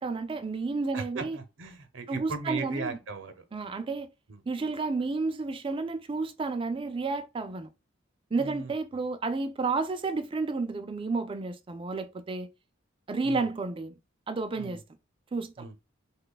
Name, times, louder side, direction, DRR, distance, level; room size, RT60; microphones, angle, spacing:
voice 1, 0.0-1.4 2.1-3.0 3.5-4.1 4.5-7.7 8.3-12.5 13.1-14.0 14.3-14.8 15.3-15.6, right 3 dB, 25° right, 0.3 m, -31 dB
voice 2, 0.9-3.4 4.3-4.4 8.4-9.0 13.2-13.5 14.6-14.8 15.6-15.8, right 4 dB, 65° right, 0.7 m, -38 dB
3.0 x 2.3 x 3.9 m
head